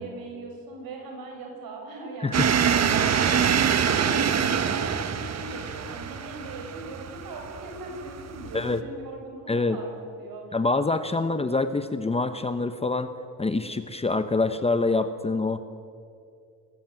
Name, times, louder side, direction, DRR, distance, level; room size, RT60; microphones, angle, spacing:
voice 1, 0.0-3.4 3.7-9.9 10.2-10.6 11.1-11.6, right 2 dB, 85° right, 2 dB, 6.5 m, -40 dB
sound 1, 2.3-8.8, right 7 dB, 50° right, 1.5 m, -25 dB
voice 2, 9.5-9.8 10.5-13.1 13.4-15.6, left 3 dB, 15° left, 9 dB, 1.0 m, -25 dB
26.0 x 20.5 x 9.2 m, 2.4 s
cardioid pair, 135°, 34 cm